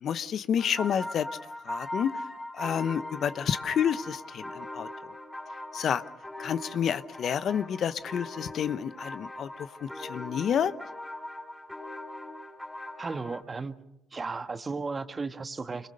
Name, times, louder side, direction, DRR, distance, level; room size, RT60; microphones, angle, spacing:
voice 1, 0.0-1.3 1.6-2.1 2.5-4.9 5.7-6.0 6.4-9.5 9.8-10.7, left 8 dB, 55° left, 14 dB, 0.9 m, -29 dB
sound 1, 0.6-13.4, left 1 dB, 10° left, 4.9 m, -40 dB
voice 2, 13.0-13.7 14.1-15.9, right 4 dB, 30° right, 10 dB, 1.5 m, -34 dB
25.5 x 21.5 x 6.6 m, 0.86 s
supercardioid pair, 65°, 0 cm